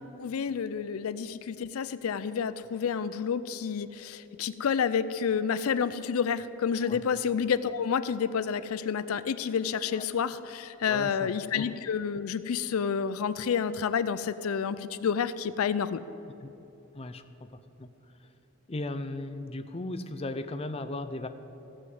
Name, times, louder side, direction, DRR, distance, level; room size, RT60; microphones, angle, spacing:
voice 1, 0.2-16.0, left 7 dB, 85° left, 14 dB, 0.4 m, -29 dB
voice 2, 10.9-11.3 11.6-11.7 16.4-16.5 16.9-17.5 17.8-17.9 18.7-21.3, left 2 dB, 30° left, 9 dB, 0.5 m, -36 dB
15.0 x 6.3 x 7.8 m, 3.0 s
head